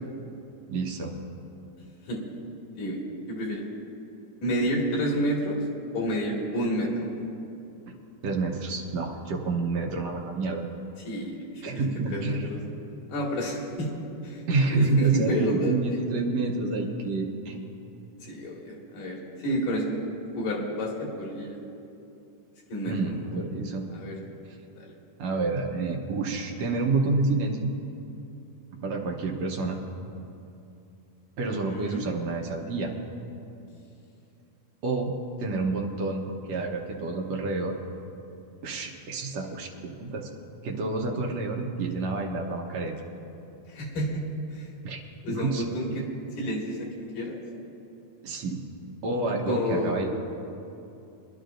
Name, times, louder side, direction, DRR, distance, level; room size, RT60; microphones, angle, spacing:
voice 1, 0.7-1.1 8.2-10.7 11.6-12.5 14.5-17.7 22.9-23.9 25.2-27.7 28.8-29.8 31.4-32.9 34.8-35.1 35.4-37.8 38.6-40.3 40.6-43.0 44.8-45.0 45.3-45.6 45.9-46.0 48.2-48.6 49.0-50.1, right 3 dB, 65° right, 0 dB, 1.9 m, -28 dB
voice 2, 3.3-3.6 4.4-5.6 5.9-7.1 11.1-11.8 12.1-12.6 13.1-13.9 14.2-16.0 18.2-20.1 20.4-21.6 22.7-23.2 23.9-24.2 31.5-32.0 43.7-44.2 44.5-44.7 45.2-46.0 46.4-47.4 49.4-50.0, equal, 85° left, -2 dB, 3.7 m, -30 dB
24.5 x 11.5 x 2.6 m, 2.7 s
omnidirectional pair, 3.7 m